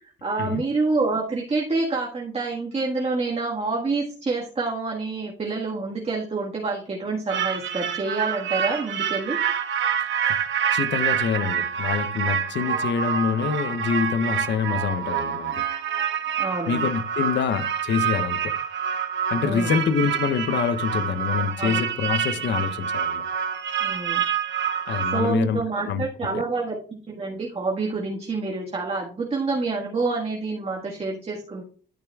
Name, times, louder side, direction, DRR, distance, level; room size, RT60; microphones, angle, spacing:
voice 1, 0.0-9.4 16.4-16.9 19.4-19.7 21.6-21.8 23.8-24.2 24.7-24.8 25.1-31.6, right 3 dB, 30° right, 1.6 m, -27 dB
sound 1, 7.3-25.3, right 8 dB, 70° right, 1.2 m, -27 dB
voice 2, 10.7-15.5 16.7-18.6 19.3-23.3 24.9-26.0, left 7 dB, 65° left, 0.7 m, -26 dB
12.0 x 6.9 x 2.3 m
cardioid pair, 90°, 20 cm